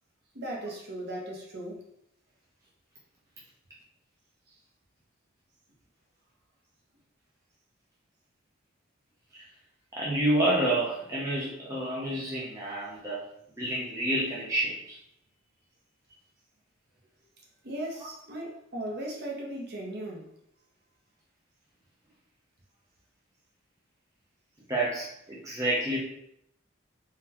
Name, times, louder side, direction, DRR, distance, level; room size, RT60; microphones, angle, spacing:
voice 1, 0.3-1.8 17.6-20.3, right 1 dB, 50° right, -2 dB, 0.8 m, -37 dB
voice 2, 9.9-13.2 13.6-15.0 24.7-26.0, right 1 dB, 15° right, -6 dB, 0.4 m, -29 dB
3.7 x 2.2 x 2.8 m, 0.76 s
head